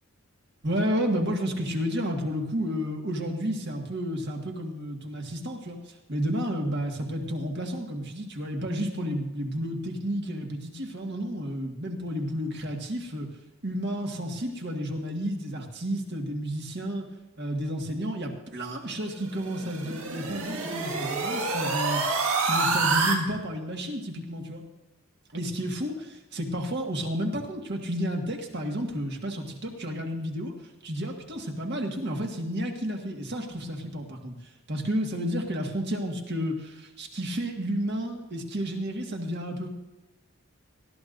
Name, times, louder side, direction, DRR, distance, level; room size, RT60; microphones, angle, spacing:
voice 1, 0.6-13.3 13.6-17.0 17.4-24.6 25.3-30.5 30.8-34.3 34.7-39.7, equal, 50° right, 2 dB, 1.7 m, -31 dB
sound 1, 19.2-23.2, right 3 dB, 70° right, 1.8 m, -27 dB
18.5 x 13.5 x 2.6 m, 1.1 s
head